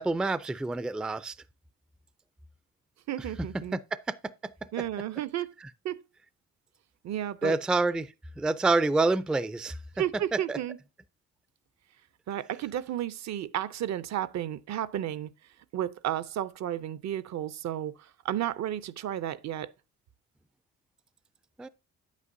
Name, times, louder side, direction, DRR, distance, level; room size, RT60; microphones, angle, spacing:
voice 1, 0.0-1.4 3.7-3.8 4.4-4.5 7.4-9.8 10.3-10.6 21.6-21.7, right 3 dB, 5° right, 0.3 m, -27 dB
voice 2, 3.1-3.8 4.7-5.5 5.8-6.0 7.0-7.5 10.0-10.8 12.3-15.3 15.7-19.7, right 11 dB, 65° right, 0.6 m, -32 dB
9.1 x 8.3 x 2.6 m
cardioid pair, 90°, 30 cm